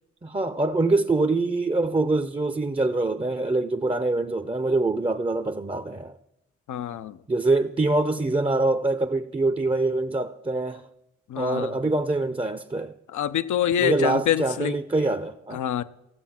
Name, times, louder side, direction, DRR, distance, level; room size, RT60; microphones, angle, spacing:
voice 1, 0.2-6.2 7.3-10.9 11.4-12.9 13.8-15.6, right 2 dB, 15° right, 0.6 m, -24 dB
voice 2, 6.7-7.2 11.3-11.7 13.1-14.7 15.5-15.8, left 10 dB, 75° left, 0.6 m, -25 dB
14.0 x 7.3 x 5.8 m
supercardioid pair, 40°, 30 cm